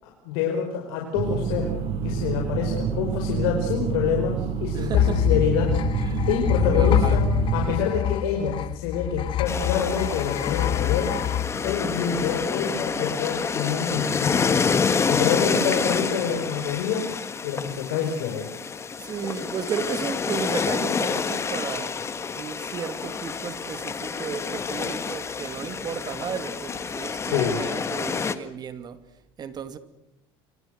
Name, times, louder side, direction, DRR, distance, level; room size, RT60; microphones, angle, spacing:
voice 1, 0.0-1.7 2.0-5.8 6.3-7.2 7.5-11.2 11.6-14.6 15.1-17.1 17.4-18.5 27.2-27.6, left 7 dB, 85° left, 5.0 m, -27 dB
sound 1, 1.1-7.8, right 6 dB, 50° right, 7.1 m, -27 dB
voice 2, 4.7-5.2 6.0-6.3 6.6-7.2 15.5-16.2 19.0-22.0 22.4-29.0 29.4-29.8, right 7 dB, 35° right, 2.4 m, -34 dB
sound 2, 4.9-12.4, left 11 dB, 45° left, 1.1 m, -25 dB
sound 3, 9.5-28.4, left 5 dB, 20° left, 1.6 m, -28 dB
27.0 x 26.0 x 6.5 m
cardioid pair, 130°, 12 cm